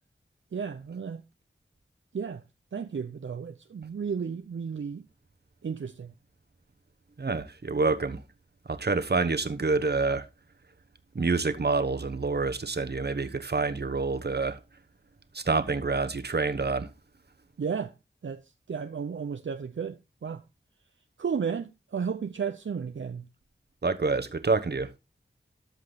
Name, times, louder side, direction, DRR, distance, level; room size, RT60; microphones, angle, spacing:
voice 1, 0.5-1.2 2.1-2.4 2.7-5.1 5.6-6.1 17.6-17.9 18.2-20.4 21.2-23.3, right 6 dB, 70° right, 0.7 m, -33 dB
voice 2, 7.2-8.2 8.6-10.3 11.1-14.6 15.3-16.9 23.8-24.9, right 3 dB, 50° right, 1.1 m, -27 dB
13.0 x 5.4 x 4.0 m
cardioid pair, 45°, 21 cm